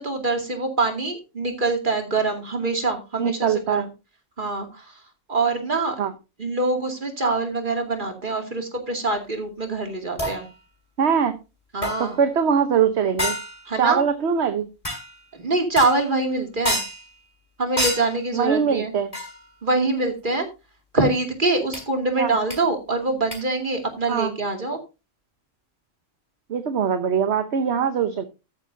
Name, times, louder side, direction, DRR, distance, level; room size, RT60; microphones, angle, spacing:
voice 1, 0.0-3.9 4.4-4.9 5.3-6.0 6.4-10.4 11.7-12.2 13.7-14.0 15.3-16.8 17.6-18.9 19.6-20.5 20.9-24.8, right 3 dB, 40° right, 4 dB, 2.6 m, -24 dB
voice 2, 3.2-3.9 6.0-6.1 11.0-11.4 12.0-13.4 13.8-14.7 18.3-19.1 22.2-22.3 24.1-24.3 26.5-28.2, right 7 dB, 60° right, 9 dB, 1.2 m, -22 dB
sound 1, 10.2-10.5 11.8-12.2 13.2-13.7 14.8-15.2 15.8-16.1 16.7-17.1 17.8-18.2 19.1-19.5 21.7-21.8 22.5-22.6 23.3-23.4, left 1 dB, 25° left, 5.4 m, -28 dB
13.5 x 10.0 x 2.7 m, 0.29 s
omnidirectional pair, 1.4 m